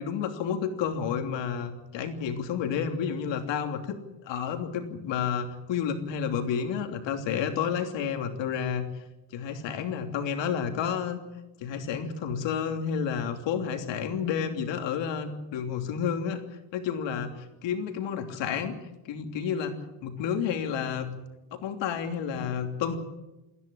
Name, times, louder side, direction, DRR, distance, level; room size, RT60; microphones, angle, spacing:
voice 1, 0.0-4.0 4.2-8.8 9.3-11.2 11.6-16.4 16.7-18.8 19.0-19.8 20.0-21.1 21.5-23.0, left 7 dB, 65° left, 5 dB, 3.1 m, -30 dB
28.0 x 11.0 x 10.0 m, 1.0 s
cardioid pair, 125°, 48 cm